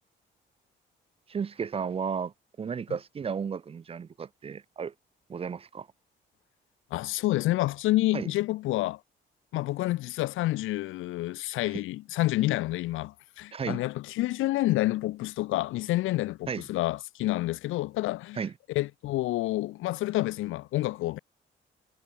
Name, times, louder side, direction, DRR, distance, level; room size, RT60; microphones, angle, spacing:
voice 1, 1.3-4.9 5.3-5.9 8.1-8.3 11.7-11.8 13.5-13.8 16.5-16.6 18.3-18.5, right 6 dB, 30° right, 0.4 m, -34 dB
voice 2, 6.9-9.0 9.5-18.4 18.7-21.2, left 17 dB, 90° left, 1.1 m, -28 dB
cardioid pair, 90°, 20 cm